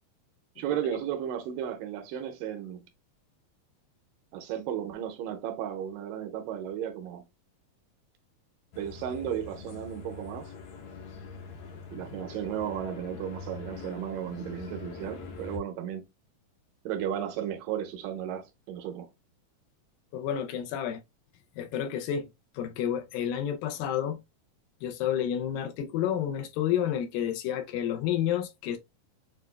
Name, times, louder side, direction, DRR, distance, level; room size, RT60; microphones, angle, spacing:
voice 1, 0.6-2.8 4.3-7.2 8.8-10.5 11.9-16.0 16.9-19.1, right 10 dB, 80° right, 2.3 m, -34 dB
sound 1, 8.7-15.6, left 5 dB, 70° left, 1.7 m, -43 dB
voice 2, 20.1-21.0 21.6-22.3 22.6-24.2 24.8-28.8, left 10 dB, 85° left, 2.4 m, -30 dB
6.8 x 2.3 x 2.2 m
omnidirectional pair, 3.9 m